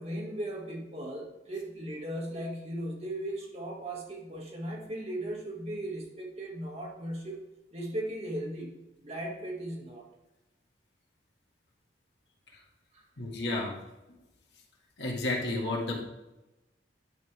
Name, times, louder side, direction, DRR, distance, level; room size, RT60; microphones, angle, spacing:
voice 1, 0.0-7.4 7.7-10.1 12.9-13.0, right 1 dB, 35° right, -1 dB, 1.9 m, -37 dB
voice 2, 13.2-13.7 15.0-16.0, left 2 dB, 70° left, -2 dB, 2.0 m, -31 dB
10.5 x 5.4 x 3.5 m, 1.0 s
head